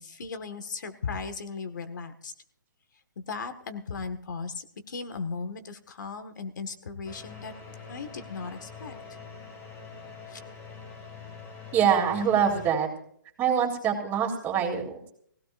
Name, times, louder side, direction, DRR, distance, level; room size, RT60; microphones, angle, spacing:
voice 1, 0.0-2.3 3.2-7.5 7.9-9.2 10.3-10.4, left 4 dB, 70° left, 9 dB, 1.9 m, -37 dB
sound 1, 7.0-12.7, left 5 dB, 20° left, 2.7 m, -44 dB
voice 2, 11.7-12.9 13.4-15.1, right 8 dB, 20° right, 0 dB, 3.3 m, -24 dB
21.5 x 16.5 x 2.7 m, 0.64 s
hypercardioid pair, 150°, 10 cm